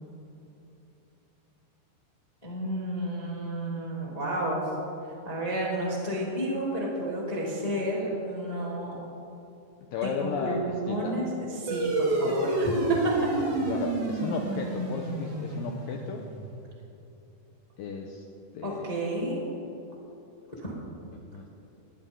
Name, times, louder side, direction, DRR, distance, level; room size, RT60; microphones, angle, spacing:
voice 1, 2.4-4.6 5.2-9.0 10.0-13.0 18.6-19.4 20.6-20.7, right 1 dB, 15° left, -4 dB, 1.8 m, -31 dB
voice 2, 9.9-11.2 12.2-12.4 12.7-16.3 17.8-18.3 18.5-18.9 19.3-19.4 21.1-21.5, left 5 dB, 85° left, 2 dB, 2.0 m, -35 dB
sound 1, 11.7-16.5, right 2 dB, 40° right, 2.9 m, -29 dB
20.5 x 17.5 x 3.9 m, 2.9 s
omnidirectional pair, 5.3 m